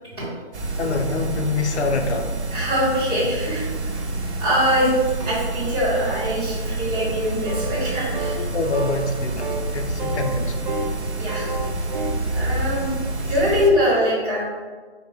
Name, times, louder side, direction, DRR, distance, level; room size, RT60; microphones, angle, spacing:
sound 1, 0.5-13.7, right 2 dB, 90° right, 1.1 m, -28 dB
voice 1, 0.8-2.3 8.4-10.5, left 4 dB, 85° left, 4 dB, 0.8 m, -25 dB
voice 2, 2.5-3.6 4.4-4.9 5.2-8.4 11.2-11.5 12.3-12.9 13.3-14.4, equal, 5° left, -23 dB, 0.6 m, -22 dB
sound 2, 7.5-7.9 8.1-8.4 8.7-9.1 9.4-9.6 10.0-11.0 11.2-12.2, right 2 dB, 50° right, 0.5 m, -30 dB
4.9 x 2.2 x 4.8 m, 1.4 s
hypercardioid pair, 175°, 33 cm